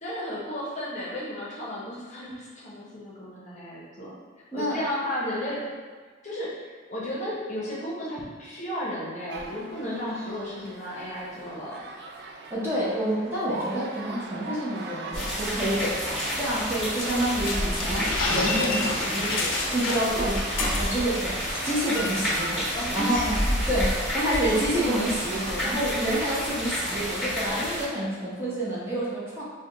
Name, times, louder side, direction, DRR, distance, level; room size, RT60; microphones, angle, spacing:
voice 1, 0.0-4.1 4.5-5.6 6.2-11.8 22.7-23.4, equal, 35° left, -6 dB, 0.7 m, -34 dB
voice 2, 4.5-4.8 12.5-20.4 20.7-21.4 21.6-29.4, equal, 10° right, -8 dB, 0.7 m, -28 dB
sound 1, 9.3-27.5, right 3 dB, 55° right, 0.3 m, -40 dB
sound 2, 15.1-27.8, equal, 5° left, 1.3 m, -30 dB
sound 3, 17.0-21.2 21.5-21.7 22.0-22.3, left 3 dB, 80° left, 0.5 m, -30 dB
3.3 x 2.1 x 3.7 m, 1.5 s
head